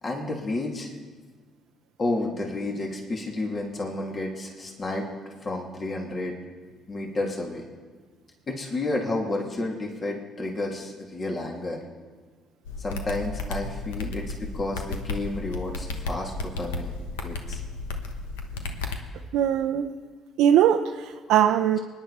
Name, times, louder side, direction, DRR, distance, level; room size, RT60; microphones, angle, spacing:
voice 1, 0.0-0.9 2.0-6.3 6.9-7.6 8.5-11.8 12.8-16.9 17.2-17.6, left 2 dB, 40° left, 0 dB, 2.9 m, -31 dB
sound 1, 12.6-19.0, left 3 dB, 90° left, 1.1 m, -33 dB
voice 2, 19.3-19.9 20.4-21.8, right 10 dB, 75° right, 4 dB, 0.5 m, -21 dB
24.0 x 10.5 x 4.4 m, 1.4 s
hypercardioid pair, 55°, 0 cm